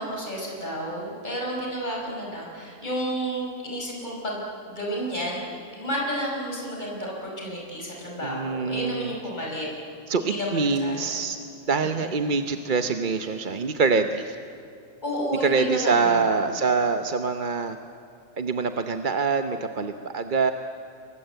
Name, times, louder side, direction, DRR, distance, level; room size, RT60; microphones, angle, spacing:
voice 1, 0.0-9.7 10.2-11.1 11.8-12.1 15.0-16.5, equal, 35° left, -2 dB, 5.4 m, -31 dB
voice 2, 8.2-9.1 10.1-11.4 11.7-14.4 15.4-17.8 18.4-20.5, right 4 dB, 45° right, 7 dB, 1.0 m, -25 dB
28.5 x 24.0 x 8.1 m, 2.6 s
omnidirectional pair, 1.3 m